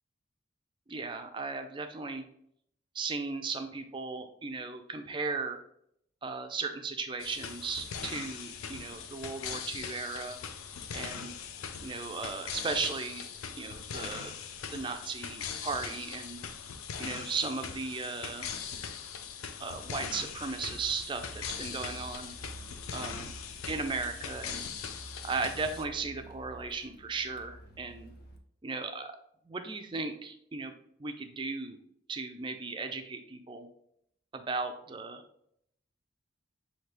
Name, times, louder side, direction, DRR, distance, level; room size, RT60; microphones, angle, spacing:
voice 1, 0.9-2.2 2.9-5.6 6.2-10.4 10.9-11.3 11.8-13.3 13.5-14.3 14.7-16.4 17.0-18.5 19.6-22.3 22.9-23.3 23.7-24.7 25.2-28.1 28.6-29.1 29.5-30.7 31.0-31.8 32.1-33.7 34.3-35.2, right 4 dB, 25° right, 6 dB, 0.4 m, -36 dB
sound 1, 7.2-25.8, left 7 dB, 90° left, 0.5 m, -41 dB
Car, 19.0-28.4, right 1 dB, 50° left, 0.6 m, -50 dB
5.9 x 2.8 x 3.2 m, 0.72 s
head